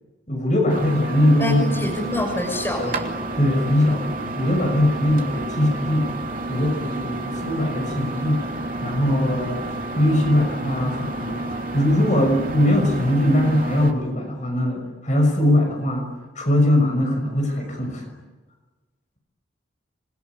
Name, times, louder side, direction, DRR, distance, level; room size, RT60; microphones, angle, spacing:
voice 1, 0.3-1.6 3.4-6.1 6.5-8.5 8.8-11.4 11.7-18.0, left 1 dB, 35° left, 2 dB, 6.2 m, -21 dB
sound 1, 0.7-13.9, right 2 dB, 45° right, 3.0 m, -30 dB
voice 2, 1.4-3.1, left 1 dB, 10° left, 0 dB, 6.3 m, -26 dB
27.5 x 22.5 x 9.7 m, 1.3 s
head